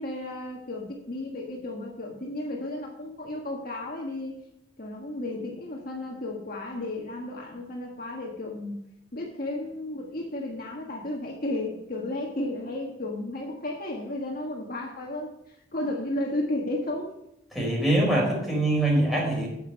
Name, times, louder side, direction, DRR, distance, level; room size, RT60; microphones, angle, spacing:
voice 1, 0.0-4.3 4.8-8.8 9.1-15.3 15.7-17.1, left 1 dB, 50° left, 0 dB, 1.6 m, -33 dB
voice 2, 17.5-19.5, right 1 dB, ahead, -3 dB, 4.5 m, -23 dB
9.5 x 7.4 x 5.8 m, 0.81 s
head